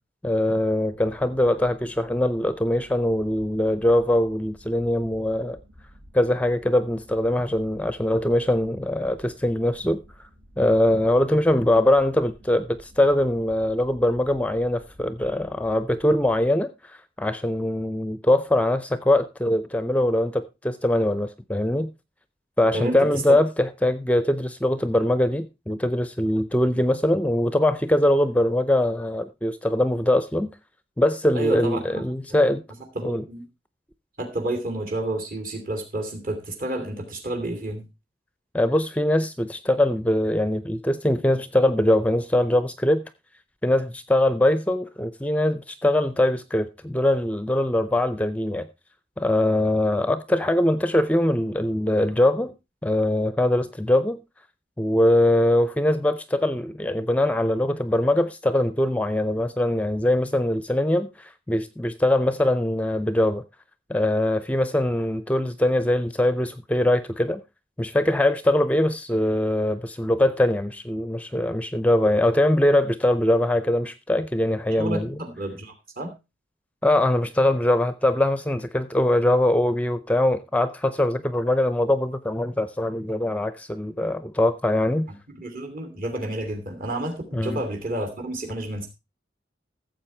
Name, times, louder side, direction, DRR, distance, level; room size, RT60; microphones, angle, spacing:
voice 1, 0.2-5.6 6.1-10.3 10.6-21.9 22.6-30.5 31.0-32.6 33.0-33.2 38.5-43.0 43.6-48.7 49.2-52.5 52.8-54.2 54.8-63.4 63.9-67.4 67.8-75.2 76.8-85.1 87.3-87.6, left 1 dB, 10° left, 0.5 m, -22 dB
sound 1, 0.8-16.5, equal, 85° right, 6.4 m, -51 dB
voice 2, 31.3-32.0 32.9-33.4 34.2-37.8 74.8-76.1 85.4-88.9, right 1 dB, 50° right, 2.8 m, -30 dB
14.5 x 7.7 x 4.4 m
head